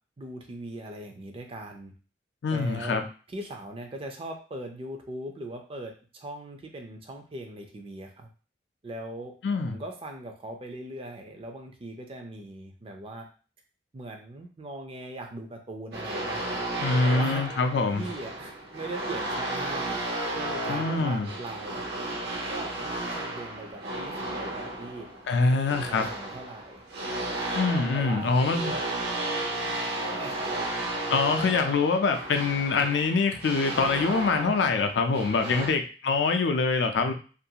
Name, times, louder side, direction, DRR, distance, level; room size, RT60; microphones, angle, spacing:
voice 1, 0.2-1.9 2.5-8.3 8.8-9.4 9.7-13.3 13.9-16.6 17.0-17.5 18.0-20.0 20.3-21.8 22.5-25.1 25.4-26.8 27.9-28.4 30.1-30.6 35.4-35.7, right 1 dB, 30° right, 3 dB, 0.4 m, -40 dB
voice 2, 2.4-3.0 9.4-9.8 16.8-18.0 20.7-21.3 25.3-26.1 27.5-28.6 31.1-37.1, left 4 dB, 70° left, 6 dB, 0.4 m, -24 dB
sound 1, 15.9-35.7, right 2 dB, 65° right, 0.7 m, -33 dB
2.5 x 2.3 x 2.8 m, 0.37 s
head